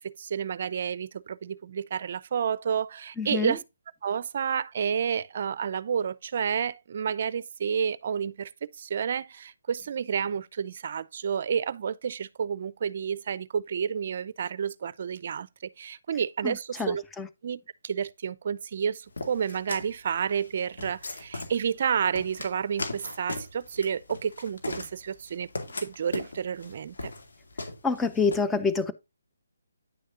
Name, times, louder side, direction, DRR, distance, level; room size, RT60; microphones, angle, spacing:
voice 1, 0.0-3.6 4.0-15.5 15.8-17.0 17.4-25.5 25.8-27.1, right 7 dB, 50° right, 0.5 m, -30 dB
voice 2, 3.2-3.6 16.4-17.3 27.8-28.9, left 4 dB, 10° left, 0.7 m, -27 dB
sound 1, 19.2-28.4, left 3 dB, 70° left, 2.2 m, -38 dB
9.8 x 6.4 x 2.5 m
figure-of-eight pair, 145°, 0 cm